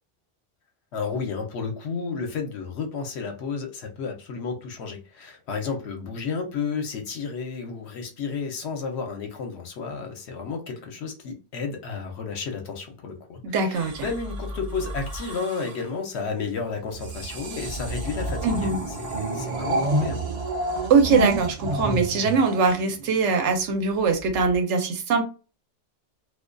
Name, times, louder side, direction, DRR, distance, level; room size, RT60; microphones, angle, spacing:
voice 1, 0.9-20.2, left 5 dB, 70° left, 0.9 m, -32 dB
voice 2, 13.4-14.1 18.4-18.8 20.9-25.2, right 4 dB, 80° right, 0.9 m, -22 dB
sound 1, 13.7-15.9 16.9-23.3 24.3-24.6, right 2 dB, 45° right, 0.5 m, -30 dB
2.3 x 2.2 x 2.5 m
omnidirectional pair, 1.2 m